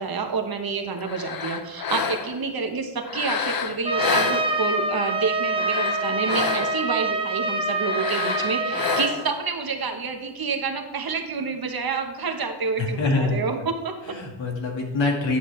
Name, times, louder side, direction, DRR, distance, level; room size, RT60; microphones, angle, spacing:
voice 1, 0.0-14.2, right 5 dB, 50° right, 4 dB, 1.2 m, -28 dB
sound 1, 1.0-2.5 3.0-4.9 5.4-6.9 7.8-9.4, left 6 dB, 50° left, 0.7 m, -29 dB
Trumpet, 3.8-9.1, right 2 dB, 10° right, 0.7 m, -26 dB
voice 2, 12.8-13.4 14.1-15.4, left 3 dB, 65° left, 0 dB, 1.9 m, -24 dB
9.7 x 6.4 x 3.2 m, 1.1 s
cardioid pair, 85°, 48 cm